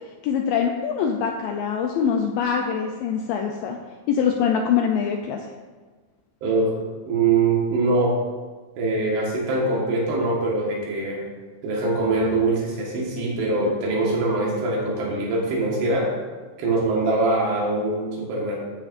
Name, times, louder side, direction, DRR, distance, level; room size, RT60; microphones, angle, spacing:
voice 1, 0.2-3.8 4.1-5.5, left 7 dB, 85° left, 2 dB, 2.0 m, -24 dB
voice 2, 6.4-6.8 7.1-8.2 8.8-11.2 11.6-16.1 16.6-18.6, right 2 dB, 90° right, -3 dB, 3.8 m, -23 dB
13.5 x 8.3 x 2.6 m, 1.4 s
omnidirectional pair, 4.6 m